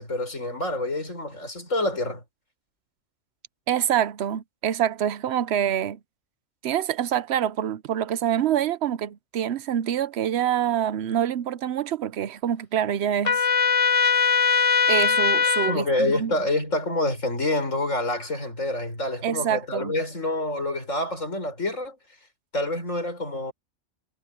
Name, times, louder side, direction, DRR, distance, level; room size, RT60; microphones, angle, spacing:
voice 1, 0.0-2.2 15.7-22.0 22.5-23.5, left 1 dB, 85° left, 6.9 m, -27 dB
voice 2, 3.7-6.0 6.6-13.4 14.9-16.3 19.2-19.9, right 10 dB, 65° right, 0.9 m, -26 dB
Trumpet, 13.2-15.8, left 6 dB, 30° left, 0.8 m, -20 dB
omnidirectional pair, 1.3 m